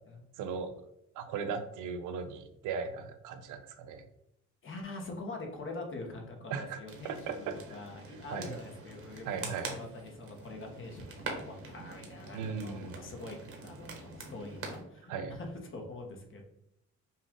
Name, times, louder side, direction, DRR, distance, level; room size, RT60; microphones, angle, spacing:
voice 1, 0.4-0.7 1.1-4.0 6.5-6.8 7.0-7.6 8.3-8.6 9.3-9.8 12.3-13.0 15.1-15.4, right 5 dB, 85° right, 9 dB, 0.6 m, -37 dB
voice 2, 4.6-16.4, left 2 dB, 45° left, 2 dB, 1.2 m, -44 dB
sound 1, 6.9-14.8, right 3 dB, 45° right, 1.3 m, -45 dB
5.6 x 2.4 x 3.7 m, 0.77 s
cardioid pair, 90°, 30 cm